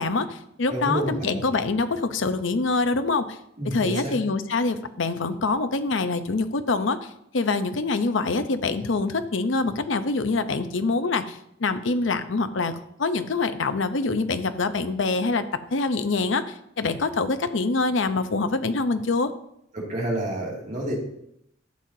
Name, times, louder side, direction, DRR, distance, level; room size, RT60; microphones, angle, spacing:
voice 1, 0.0-3.4 3.6-15.4 15.7-19.3, left 3 dB, 70° left, 10 dB, 0.7 m, -25 dB
voice 2, 0.7-1.4 3.6-4.1 19.7-21.0, right 1 dB, 40° right, -2 dB, 2.4 m, -29 dB
12.5 x 7.6 x 2.8 m, 0.75 s
head